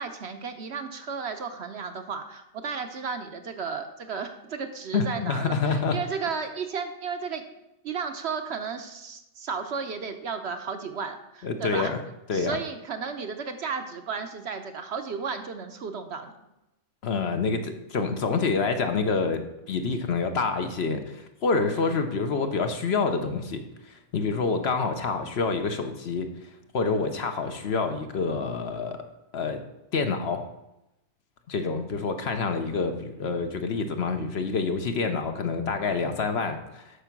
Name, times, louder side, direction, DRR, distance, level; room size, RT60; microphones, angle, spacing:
voice 1, 0.0-7.4 7.8-11.9 12.3-16.3 21.7-22.1, right 5 dB, 60° right, 7 dB, 0.9 m, -34 dB
voice 2, 4.9-6.0 11.4-12.0 12.3-12.6 17.0-26.3 26.7-29.0 29.3-29.6 29.9-30.4 31.5-36.8, left 4 dB, 55° left, 7 dB, 0.9 m, -27 dB
8.2 x 5.9 x 5.9 m, 0.91 s
omnidirectional pair, 1.4 m